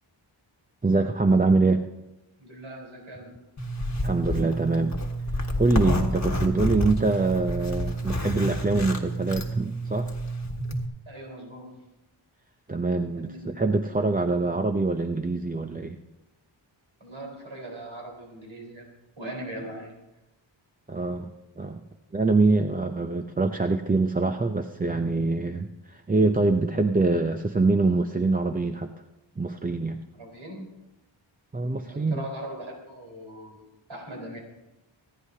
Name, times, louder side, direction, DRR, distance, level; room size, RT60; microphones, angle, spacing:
voice 1, 0.8-1.8 4.0-5.0 5.3-10.1 12.7-16.0 20.9-21.3 21.6-21.8 22.1-28.9 29.4-30.0 31.5-32.3, right 3 dB, 20° right, 6 dB, 0.5 m, -24 dB
voice 2, 2.4-3.4 11.1-11.8 13.2-13.4 17.0-18.9 19.2-19.9 30.2-30.7 31.7-34.4, right 1 dB, 70° right, -1 dB, 4.2 m, -40 dB
Zipper (clothing), 3.6-10.8, equal, 35° left, 1.4 m, -29 dB
25.5 x 9.9 x 2.8 m, 0.98 s
wide cardioid pair, 85°, 48 cm